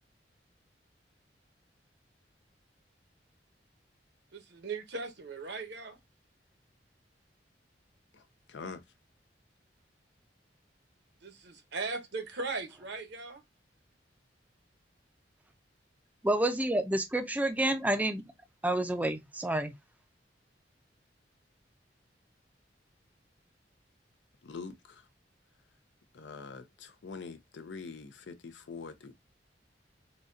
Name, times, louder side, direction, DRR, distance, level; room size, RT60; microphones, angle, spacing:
voice 1, 4.3-6.0 11.2-13.4, right 3 dB, 65° right, 0.8 m, -38 dB
voice 2, 8.1-8.9 24.4-25.1 26.1-29.1, left 4 dB, 75° left, 0.5 m, -44 dB
voice 3, 16.2-18.3 18.6-19.7, right 1 dB, 10° right, 0.4 m, -29 dB
4.0 x 2.2 x 2.5 m
head